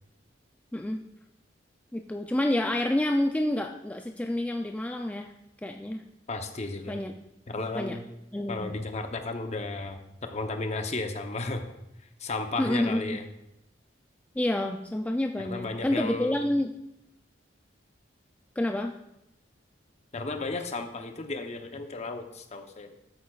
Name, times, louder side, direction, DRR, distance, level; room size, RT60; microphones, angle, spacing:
voice 1, 0.7-1.0 1.9-5.3 5.6-6.0 6.9-7.1 7.7-8.0 8.3-8.7 12.6-13.2 14.4-16.7 18.6-18.9, left 1 dB, 10° left, 3 dB, 0.3 m, -28 dB
voice 2, 6.3-6.9 7.5-8.0 8.5-11.6 12.2-13.3 15.4-16.4 20.1-23.0, left 3 dB, 40° left, 6 dB, 0.7 m, -34 dB
12.0 x 8.2 x 2.4 m, 0.84 s
head